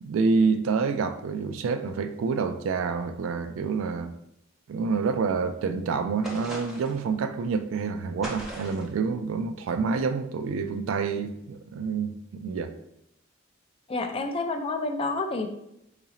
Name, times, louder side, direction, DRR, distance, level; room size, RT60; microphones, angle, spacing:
voice 1, 0.0-4.1 4.7-12.7, right 5 dB, 80° right, 0.3 m, -27 dB
sound 1, 6.2-7.0 8.2-8.9, right 1 dB, 5° right, 0.7 m, -38 dB
voice 2, 13.9-15.5, left 3 dB, 30° left, 0.3 m, -29 dB
3.9 x 2.5 x 2.8 m
head